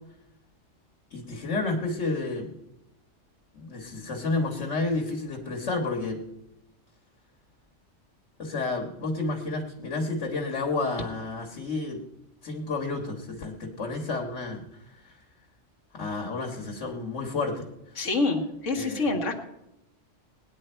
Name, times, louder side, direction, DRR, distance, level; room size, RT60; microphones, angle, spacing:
voice 1, 1.1-2.5 3.5-6.3 8.4-12.0 12.4-15.2 15.9-18.0 18.7-19.1, left 3 dB, 70° left, 0 dB, 1.9 m, -31 dB
voice 2, 18.0-19.4, left 3 dB, 90° left, 4 dB, 1.9 m, -26 dB
18.5 x 10.0 x 4.4 m, 0.87 s
omnidirectional pair, 1.2 m